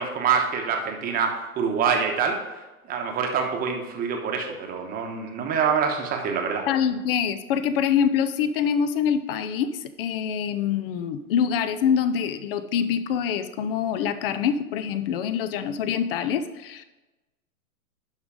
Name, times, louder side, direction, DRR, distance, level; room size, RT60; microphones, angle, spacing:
voice 1, 0.0-2.4 2.9-6.6, right 6 dB, 20° right, 3 dB, 1.1 m, -25 dB
voice 2, 6.7-16.8, left 8 dB, 40° left, 12 dB, 0.6 m, -25 dB
11.5 x 3.9 x 4.9 m, 1.1 s
hypercardioid pair, 135°, 45 cm